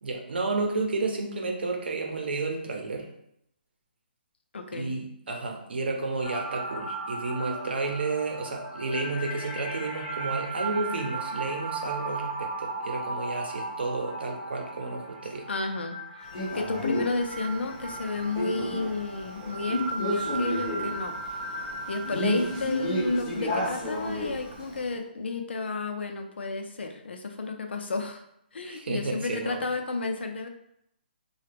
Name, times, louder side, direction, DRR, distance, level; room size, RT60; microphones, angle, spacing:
voice 1, 0.0-3.1 4.7-15.5 28.6-29.7, right 3 dB, 70° right, 2 dB, 0.8 m, -31 dB
voice 2, 4.5-4.9 15.5-16.3 16.5-21.2 21.5-21.6 21.9-28.2 28.5-30.5, left 3 dB, 90° left, 5 dB, 0.6 m, -32 dB
sound 1, 6.2-24.5, right 3 dB, 20° right, 0.5 m, -37 dB
Male speech man speaking, 16.3-24.9, left 1 dB, 25° left, 1.4 m, -32 dB
3.2 x 2.3 x 3.3 m, 0.76 s
hypercardioid pair, 180°, 6 cm